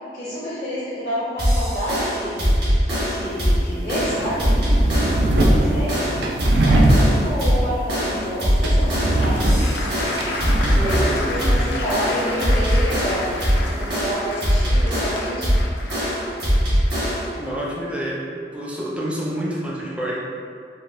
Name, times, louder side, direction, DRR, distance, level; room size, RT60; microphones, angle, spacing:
voice 1, 0.1-2.8 3.0-4.5 5.2-6.0 6.7-9.4 10.8-15.6, equal, 85° left, -15 dB, 1.3 m, -29 dB
sound 1, 1.4-17.4, equal, 65° right, 1.1 m, -21 dB
sound 2, 3.0-14.1, right 1 dB, 80° right, 0.4 m, -24 dB
voice 2, 5.4-5.9 10.7-11.8 17.3-18.3 18.5-20.2, equal, 5° right, -5 dB, 0.4 m, -28 dB
Applause, 8.8-17.8, left 2 dB, 70° left, 0.4 m, -32 dB
4.0 x 2.0 x 2.4 m, 2.2 s
head